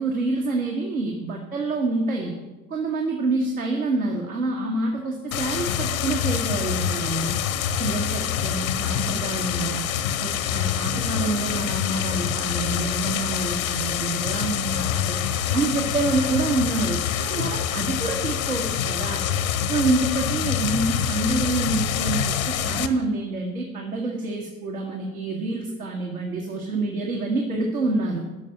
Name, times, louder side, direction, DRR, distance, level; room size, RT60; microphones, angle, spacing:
voice 1, 0.0-2.3 2.7-7.3 7.8-9.8 10.2-15.2 15.5-19.2 19.7-28.2, right 3 dB, 85° right, 0 dB, 1.6 m, -27 dB
sound 1, 5.3-22.9, left 9 dB, 75° left, 1.0 m, -26 dB
12.0 x 6.7 x 9.0 m, 1.1 s
figure-of-eight pair, 70°, 41 cm